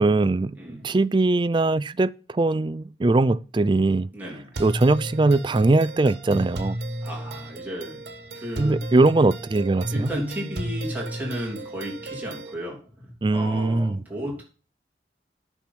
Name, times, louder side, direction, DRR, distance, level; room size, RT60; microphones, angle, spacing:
voice 1, 0.0-0.6 0.8-4.1 4.6-6.8 8.6-10.1 13.2-14.0, right 2 dB, 25° right, 0.4 m, -21 dB
voice 2, 0.5-0.9 4.1-4.5 7.0-8.0 8.3-8.8 9.9-14.4, equal, 10° right, 3.4 m, -34 dB
sound 1, 4.5-12.5, right 1 dB, 65° right, 1.5 m, -33 dB
9.0 x 6.1 x 5.9 m
head